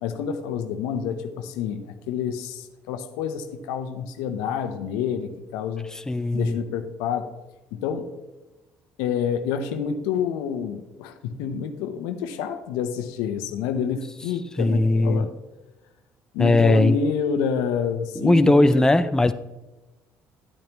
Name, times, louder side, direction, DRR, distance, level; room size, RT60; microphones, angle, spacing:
voice 1, 0.0-5.9 6.3-7.3 7.7-8.1 9.0-15.3 16.3-18.8, left 7 dB, 90° left, 8 dB, 0.8 m, -28 dB
voice 2, 5.9-6.6 14.6-15.3 16.4-17.0 18.2-19.3, left 2 dB, 10° left, 11 dB, 0.4 m, -19 dB
11.0 x 8.8 x 3.0 m, 1.0 s
supercardioid pair, 80°, 6 cm